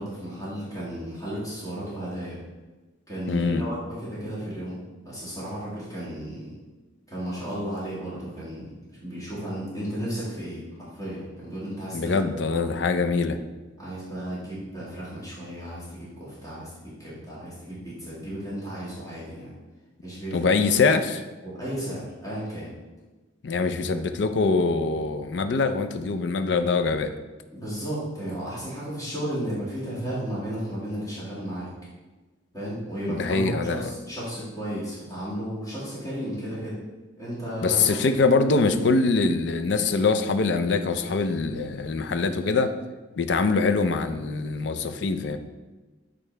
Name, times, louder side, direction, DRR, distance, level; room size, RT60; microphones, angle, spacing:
voice 1, 0.0-2.4 3.1-6.5 7.1-8.7 9.0-12.2 12.5-12.6 13.8-19.5 20.0-20.5 21.4-22.7 27.5-31.7 32.5-36.8 37.2-38.0, equal, 20° left, -9 dB, 2.0 m, -34 dB
voice 2, 3.3-3.6 11.9-13.4 20.3-21.2 23.4-27.1 33.0-33.9 37.6-42.7 43.2-45.4, left 4 dB, 65° left, 9 dB, 0.5 m, -23 dB
8.1 x 3.8 x 3.3 m, 1.2 s
head